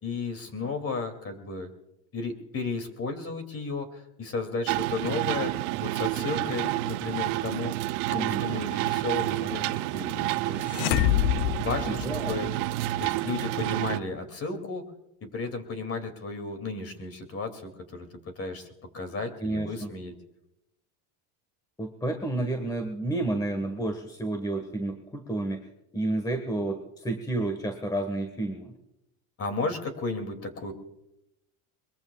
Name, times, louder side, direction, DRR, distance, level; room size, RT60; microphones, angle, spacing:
voice 1, 0.0-1.7 2.1-5.5 5.8-7.7 8.1-10.6 11.6-12.5 13.0-14.8 15.2-18.1 18.4-18.7 18.9-20.1 29.4-30.7, left 3 dB, 30° left, 7 dB, 2.7 m, -33 dB
sound 1, 4.7-14.0, right 17 dB, 80° right, 0.7 m, -29 dB
sound 2, 10.7-12.7, left 15 dB, 75° left, 0.6 m, -26 dB
voice 2, 11.9-12.4 19.4-19.9 21.8-25.6 25.9-28.7, right 2 dB, 10° left, 5 dB, 1.5 m, -30 dB
22.5 x 22.5 x 2.4 m, 0.87 s
cardioid pair, 130°, 46 cm